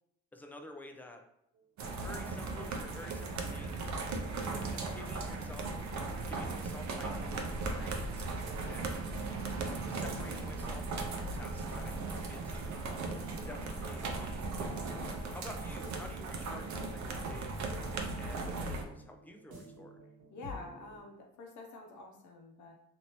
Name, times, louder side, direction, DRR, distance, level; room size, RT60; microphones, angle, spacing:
voice 1, 0.3-1.3 1.9-3.9 4.5-5.8 6.2-8.3 8.7-9.0 9.7-12.8 13.4-17.6 18.2-20.0, left 1 dB, 5° left, 4 dB, 0.4 m, -50 dB
sound 1, 1.5-21.0, left 1 dB, 85° right, 1.1 m, -53 dB
sound 2, 1.8-18.8, right 3 dB, 65° right, 0.6 m, -37 dB
voice 2, 20.3-22.7, left 3 dB, 70° left, 2 dB, 0.8 m, -48 dB
2.9 x 2.6 x 2.9 m, 0.75 s
cardioid pair, 90°, 30 cm